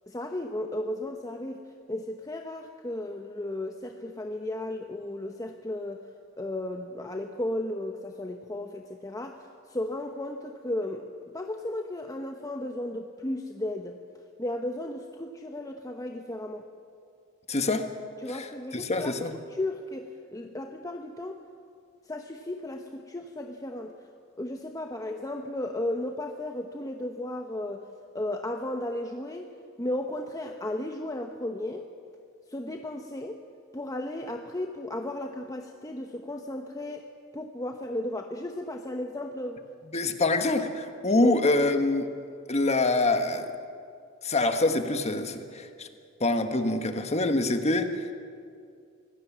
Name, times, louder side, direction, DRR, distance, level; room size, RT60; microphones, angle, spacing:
voice 1, 0.1-1.6 1.9-6.0 6.4-11.1 11.3-14.0 14.4-16.7 18.2-19.2 19.5-21.4 22.1-23.9 24.4-27.9 28.1-29.5 29.8-31.9 32.5-33.4 33.7-37.1 37.3-39.6 41.1-41.4, left 1 dB, 15° left, 4 dB, 0.9 m, -34 dB
voice 2, 17.5-17.9 18.3-18.5 18.7-19.3 39.9-42.1 42.5-43.5 44.2-45.9 46.2-48.1, left 2 dB, 30° left, 7 dB, 1.4 m, -25 dB
25.0 x 16.5 x 7.4 m, 2.3 s
head